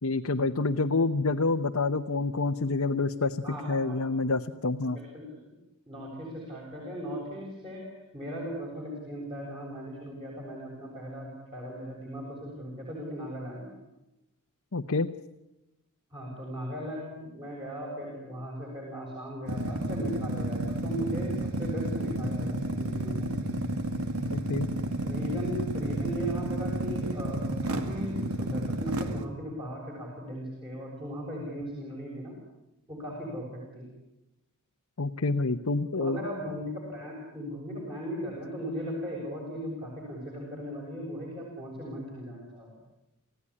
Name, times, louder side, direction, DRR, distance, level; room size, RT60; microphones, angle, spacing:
voice 1, 0.0-3.4 3.7-5.0 14.7-15.1 24.3-24.7 35.0-36.2, left 3 dB, 70° left, 4 dB, 0.9 m, -27 dB
voice 2, 3.4-4.0 4.9-5.6 5.9-13.8 16.1-23.3 25.0-32.4 32.9-33.9 35.9-42.8, equal, 25° right, -3 dB, 7.2 m, -37 dB
sound 1, 19.5-29.2, right 1 dB, 75° right, 2.3 m, -31 dB
29.5 x 16.0 x 10.0 m, 0.96 s
head